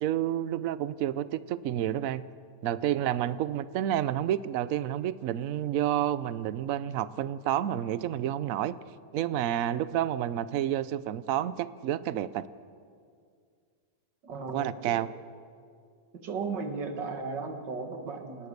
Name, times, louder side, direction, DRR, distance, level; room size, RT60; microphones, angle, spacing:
voice 1, 0.0-2.2 2.6-8.7 9.1-12.5 14.5-15.1, right 11 dB, 60° right, 15 dB, 1.0 m, -29 dB
voice 2, 14.2-15.1 16.1-18.5, right 4 dB, 80° right, 5 dB, 2.3 m, -36 dB
28.5 x 18.5 x 6.7 m, 2.2 s
omnidirectional pair, 1.9 m